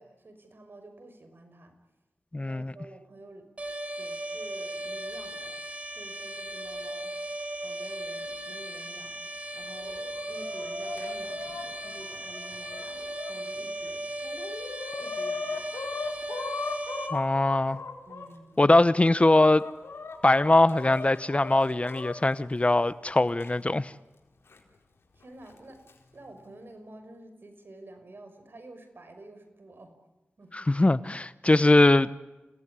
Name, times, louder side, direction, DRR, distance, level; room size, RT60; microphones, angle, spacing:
voice 1, 0.0-1.7 2.4-3.5 4.0-5.6 5.9-7.1 7.6-9.2 9.5-14.0 15.0-15.6 18.1-18.6 25.1-25.8 26.1-29.9 30.4-30.7, right 2 dB, 60° right, 5.7 m, -49 dB
voice 2, 2.3-2.7 17.1-17.8 18.6-19.6 20.2-23.9 30.5-32.1, left 2 dB, 30° left, 0.9 m, -21 dB
sound 1, 3.6-17.1, right 1 dB, 35° right, 4.3 m, -37 dB
Chicken rooster, 9.8-13.3 13.9-14.0 14.2-18.3 18.9-22.1 23.4-23.5 24.5-24.6 25.6-25.9, left 4 dB, 85° left, 4.3 m, -38 dB
29.5 x 18.0 x 9.8 m
cardioid pair, 50°, 4 cm